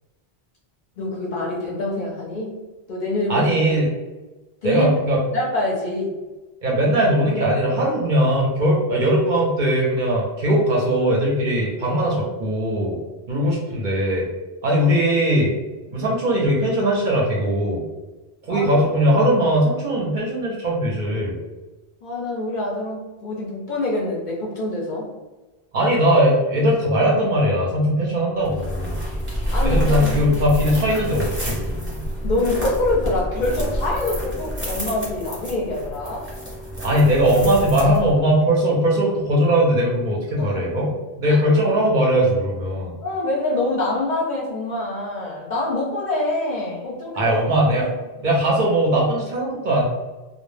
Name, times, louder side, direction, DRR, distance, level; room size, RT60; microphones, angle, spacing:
voice 1, 1.0-2.6 2.9-3.5 4.6-4.9 5.3-6.1 15.9-16.0 18.5-18.8 22.0-25.1 29.5-30.3 32.2-36.3 40.4-40.6 41.3-41.4 43.0-47.4 47.8-47.9 48.2-48.3, left 2 dB, 55° left, -3 dB, 0.6 m, -25 dB
voice 2, 3.3-3.9 4.6-5.2 6.6-13.0 13.3-14.3 14.6-15.5 15.9-17.8 18.4-21.4 25.7-28.9 29.6-32.0 36.8-40.9 41.2-42.9 47.2-47.9 48.2-49.8, equal, 55° right, -3 dB, 0.6 m, -20 dB
sound 1, 28.4-38.3, equal, 10° right, 0.8 m, -28 dB
2.1 x 2.0 x 3.1 m, 1.1 s
omnidirectional pair, 1.1 m